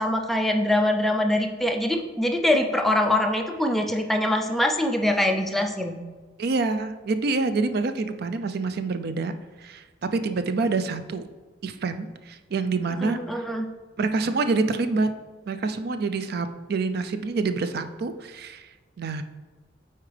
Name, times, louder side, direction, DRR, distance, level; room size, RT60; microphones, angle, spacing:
voice 1, 0.0-6.0 13.0-13.7, left 1 dB, ahead, 3 dB, 0.5 m, -23 dB
voice 2, 6.4-9.8 10.1-11.2 11.6-13.4 14.0-15.1 15.5-18.7 19.0-19.2, right 3 dB, 60° right, 10 dB, 0.4 m, -27 dB
8.4 x 4.4 x 3.3 m, 1.3 s
head